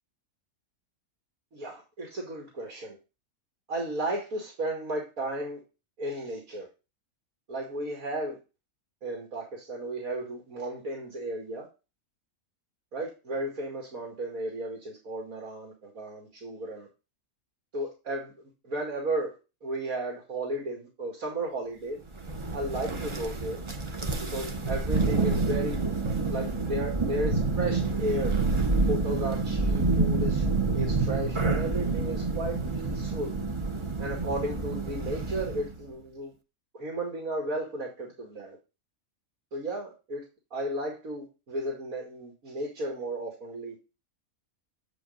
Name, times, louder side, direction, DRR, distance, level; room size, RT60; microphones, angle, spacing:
voice 1, 1.5-3.0 3.7-5.6 6.0-6.7 7.5-8.4 9.0-11.7 12.9-16.9 17.7-18.3 18.6-19.4 19.6-22.0 22.5-23.6 24.3-25.8 26.3-28.4 28.9-30.4 30.7-33.3 34.0-36.3 36.7-38.6 39.5-40.2 40.5-43.7, right 1 dB, 70° right, 0 dB, 2.6 m, -34 dB
Thunder, 22.1-35.8, right 3 dB, 30° right, 0.6 m, -28 dB
8.1 x 5.0 x 3.9 m, 0.28 s
omnidirectional pair, 1.5 m